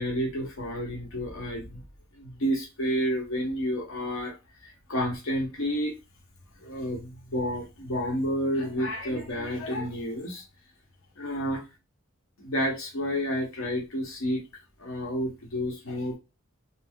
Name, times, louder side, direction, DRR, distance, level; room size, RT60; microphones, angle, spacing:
voice 1, 0.0-1.8 2.1-4.4 4.6-5.9 6.6-10.4 11.2-11.6 12.4-14.4 14.8-16.2, equal, 80° left, 0.9 m, -30 dB
2.6 x 2.0 x 3.4 m
head